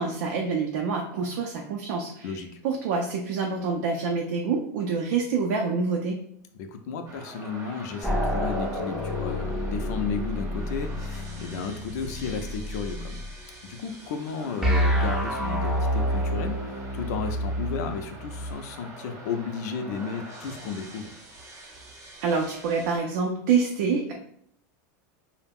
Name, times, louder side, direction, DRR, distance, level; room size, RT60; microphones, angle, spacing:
voice 1, 0.0-2.4 2.6-6.2 22.2-24.1, right 5 dB, 70° right, 1 dB, 0.4 m, -26 dB
voice 2, 2.2-2.6 6.6-13.2 13.6-21.1, left 5 dB, 70° left, 6 dB, 0.4 m, -33 dB
sound 1, 7.1-23.0, right 2 dB, 30° right, 0.8 m, -45 dB
sound 2, 8.0-13.3 14.6-18.5, equal, 5° right, 0.4 m, -28 dB
2.3 x 2.0 x 3.4 m, 0.69 s
supercardioid pair, 140°, 9 cm